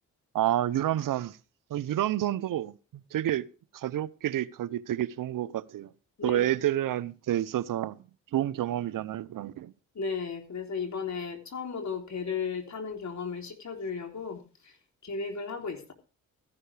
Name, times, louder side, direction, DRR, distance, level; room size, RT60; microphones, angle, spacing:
voice 1, 0.3-1.4 1.7-3.4 3.7-5.9 6.2-8.0 8.3-9.7, right 12 dB, 60° right, 0.7 m, -29 dB
voice 2, 9.9-14.8 15.0-15.9, left 5 dB, 50° left, 3.3 m, -35 dB
14.0 x 11.0 x 3.3 m
hypercardioid pair, 45°, 36 cm